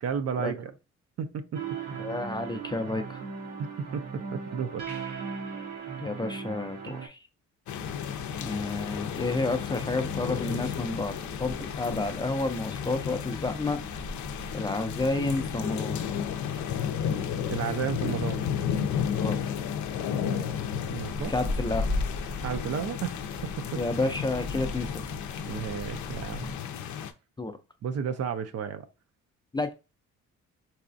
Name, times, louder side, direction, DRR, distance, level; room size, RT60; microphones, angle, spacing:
voice 1, 0.0-0.7 1.2-1.6 3.6-4.8 17.5-18.4 20.9-21.3 22.4-23.2 23.4-23.8 25.4-26.6 27.8-28.9, right 7 dB, 55° right, 0.5 m, -32 dB
sound 1, 1.5-7.1, right 6 dB, 75° right, 0.9 m, -37 dB
voice 2, 2.0-3.2 6.0-7.2 8.4-14.1 14.5-16.0 19.1-19.4 21.3-22.0 23.8-25.0 27.4-27.6 29.5-29.7, left 2 dB, 15° left, 0.4 m, -30 dB
sound 2, 7.7-27.1, left 8 dB, 70° left, 0.5 m, -33 dB
sound 3, 7.8-26.6, left 1 dB, 20° right, 0.7 m, -40 dB
4.1 x 2.3 x 2.6 m
cardioid pair, 90°, 30 cm